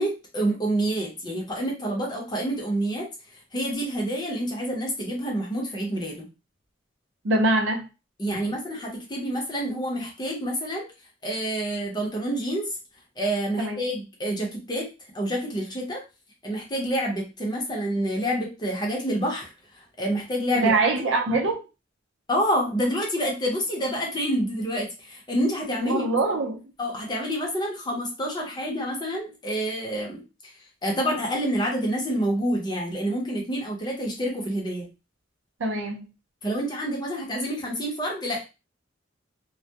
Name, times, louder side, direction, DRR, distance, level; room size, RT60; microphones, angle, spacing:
voice 1, 0.0-3.1 3.5-6.2 8.2-10.9 11.2-12.8 13.2-14.9 15.1-16.0 16.4-20.7 22.3-26.0 26.8-30.5 30.8-34.9 36.4-38.4, equal, 25° left, -1 dB, 0.7 m, -28 dB
voice 2, 7.2-7.9 13.6-13.8 20.5-21.6 25.8-26.6 35.6-36.0, right 2 dB, 75° right, 2 dB, 0.6 m, -23 dB
2.2 x 2.1 x 2.7 m, 0.29 s
head